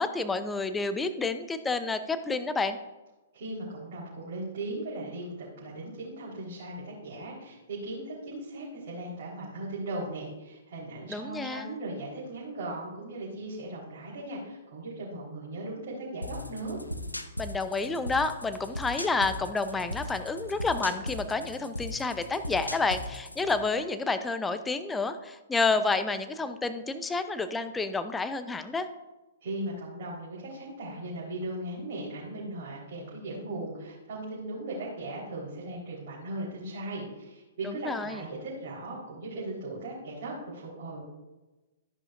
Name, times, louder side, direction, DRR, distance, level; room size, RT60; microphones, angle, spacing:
voice 1, 0.0-2.8 11.1-11.7 17.4-28.9 37.8-38.2, left 3 dB, 10° left, 10 dB, 0.6 m, -29 dB
voice 2, 3.3-16.8 29.4-41.0, right 2 dB, 45° right, -6 dB, 4.0 m, -38 dB
sound 1, 16.2-23.6, left 1 dB, 85° left, 0.9 m, -38 dB
13.0 x 10.5 x 2.6 m, 1.1 s
figure-of-eight pair, 115°, 0 cm